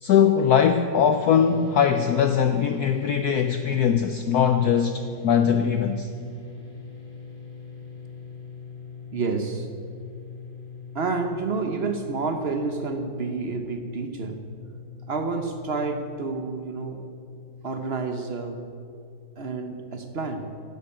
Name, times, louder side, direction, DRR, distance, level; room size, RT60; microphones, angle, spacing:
voice 1, 0.0-6.1, left 8 dB, 85° left, 0.8 m, -21 dB
sound 1, 1.2-18.7, left 5 dB, 55° left, 2.9 m, -42 dB
voice 2, 9.1-9.7 10.9-14.5 15.1-17.0 17.6-18.7 19.4-20.6, right 4 dB, 55° right, 0.6 m, -29 dB
12.5 x 8.6 x 8.8 m
omnidirectional pair, 2.3 m